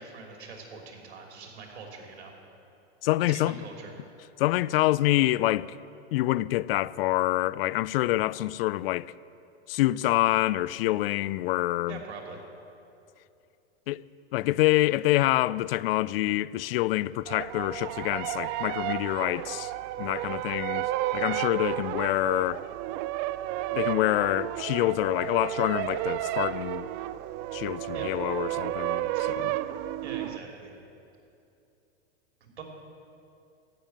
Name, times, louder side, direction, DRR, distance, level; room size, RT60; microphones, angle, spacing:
voice 1, 0.0-2.3 3.3-3.9 11.9-12.4 27.9-28.1 29.1-29.2 30.0-30.8 32.4-32.6, right 4 dB, 75° right, 3.1 m, -43 dB
voice 2, 3.0-3.6 4.4-5.7 6.1-9.1 9.7-12.0 13.9-14.0 14.3-19.7 20.0-22.6 23.7-26.9 27.5-29.6, left 17 dB, 60° left, 0.5 m, -26 dB
sound 1, 17.3-30.4, right 15 dB, 35° right, 0.4 m, -32 dB
15.0 x 7.0 x 9.2 m
hypercardioid pair, 115°, 33 cm